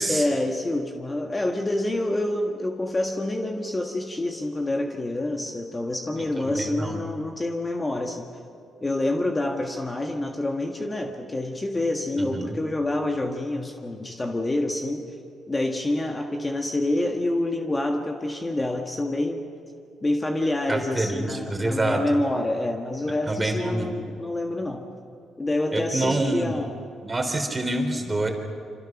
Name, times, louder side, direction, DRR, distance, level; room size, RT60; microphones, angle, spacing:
voice 1, 0.1-8.3 8.8-15.0 15.5-19.4 20.0-24.9 25.4-26.7, left 1 dB, 20° left, 2 dB, 1.7 m, -27 dB
voice 2, 6.4-7.0 12.1-12.6 20.7-22.0 23.3-23.9 25.7-26.5 27.0-28.3, right 2 dB, 20° right, 4 dB, 3.8 m, -26 dB
27.0 x 26.5 x 6.1 m, 2.4 s
cardioid pair, 90°, 0 cm